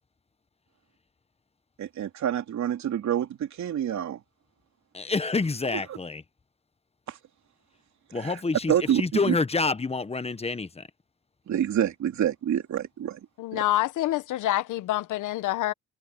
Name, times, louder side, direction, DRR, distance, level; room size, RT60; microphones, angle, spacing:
voice 1, 1.8-4.2 7.1-7.2 8.2-8.4 8.7-9.4 11.5-13.2 13.5-13.6, right 10 dB, 65° right, 3.3 m, -27 dB
voice 2, 4.9-6.2 8.1-10.8, left 4 dB, 20° left, 1.2 m, -28 dB
voice 3, 13.4-15.7, left 14 dB, 85° left, 1.1 m, -27 dB
cardioid pair, 90°, 30 cm